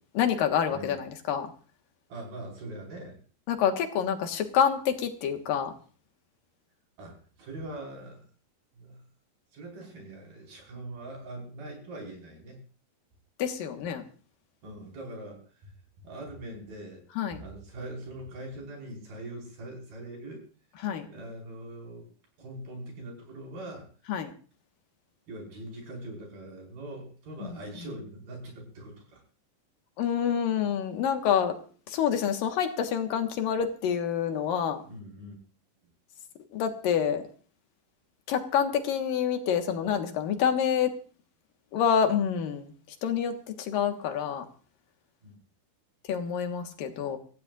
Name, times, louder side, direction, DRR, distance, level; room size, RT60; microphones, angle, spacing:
voice 1, 0.1-1.5 3.5-5.7 13.4-14.0 17.2-17.4 20.8-21.1 24.1-24.3 27.4-27.9 30.0-31.6 31.9-34.8 36.5-37.3 38.3-40.9 41.7-42.7 43.0-44.5 46.1-47.2, left 8 dB, 80° left, 6 dB, 3.1 m, -27 dB
voice 2, 2.1-3.2 7.0-8.2 8.8-9.0 9.5-12.6 14.6-15.7 16.0-17.0 17.4-20.4 21.1-22.1 22.4-23.9 25.3-29.2 34.9-35.4 45.2-45.4, right 1 dB, 80° right, -1 dB, 7.1 m, -42 dB
25.0 x 15.0 x 2.5 m, 0.40 s
omnidirectional pair, 4.0 m